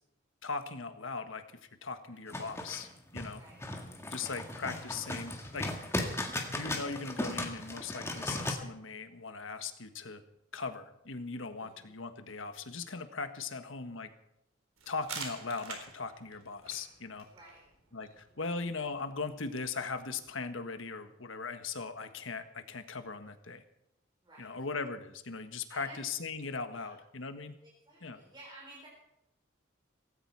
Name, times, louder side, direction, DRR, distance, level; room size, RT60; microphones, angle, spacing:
voice 1, 0.4-2.9 3.1-3.4 4.1-5.7 6.5-10.2 10.5-14.1 14.9-17.3 17.9-23.6 24.4-27.5 28.0-28.2, left 4 dB, 65° left, 9 dB, 1.4 m, -39 dB
sound 1, 2.3-8.5, left 1 dB, 15° left, 1.8 m, -37 dB
voice 2, 11.6-11.9 17.3-17.6 18.3-18.6 24.2-24.5 25.7-26.1 26.7-27.0 27.6-28.9, right 1 dB, 20° right, -4 dB, 4.0 m, -54 dB
sound 2, 14.8-20.3, right 5 dB, 85° right, 3.7 m, -48 dB
17.5 x 16.0 x 4.7 m, 0.82 s
head